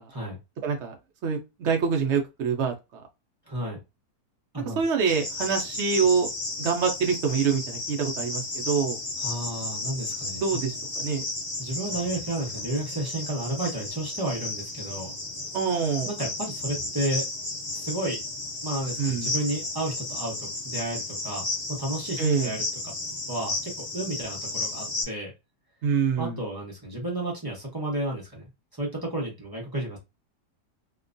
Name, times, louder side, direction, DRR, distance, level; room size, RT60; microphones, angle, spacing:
voice 1, 0.6-1.0 1.2-3.0 4.8-6.3 6.6-9.0 10.4-11.2 15.5-16.1 19.0-19.3 22.2-22.5 25.8-26.4, right 6 dB, 75° right, 0.6 m, -25 dB
voice 2, 3.5-3.8 4.5-4.8 9.2-10.4 11.6-15.1 16.1-17.3 17.7-18.2 18.6-25.3 26.2-28.4 28.7-30.0, right 1 dB, 30° right, 0.4 m, -32 dB
Cricket, 5.1-25.0, left 2 dB, 30° left, 1.0 m, -33 dB
2.9 x 2.2 x 2.5 m
omnidirectional pair, 1.8 m